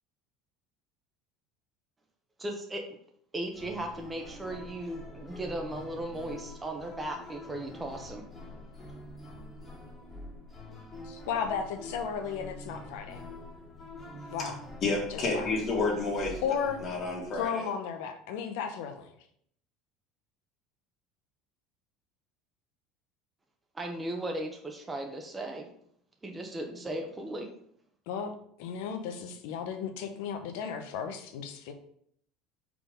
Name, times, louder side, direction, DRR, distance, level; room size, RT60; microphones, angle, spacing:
voice 1, 2.4-2.8 3.3-8.2 23.7-25.7 26.2-27.5, right 1 dB, 15° right, 1.0 m, -37 dB
sound 1, 3.5-17.4, left 2 dB, 20° left, 2.0 m, -45 dB
voice 2, 11.0-13.2 14.3-14.6 15.1-15.5 16.4-16.8 17.4-19.1 28.1-31.7, left 7 dB, 75° left, 0.8 m, -34 dB
voice 3, 14.8-16.4 16.8-17.6, left 3 dB, 45° left, 2.1 m, -30 dB
4.9 x 3.9 x 5.1 m
supercardioid pair, 100°, 0 cm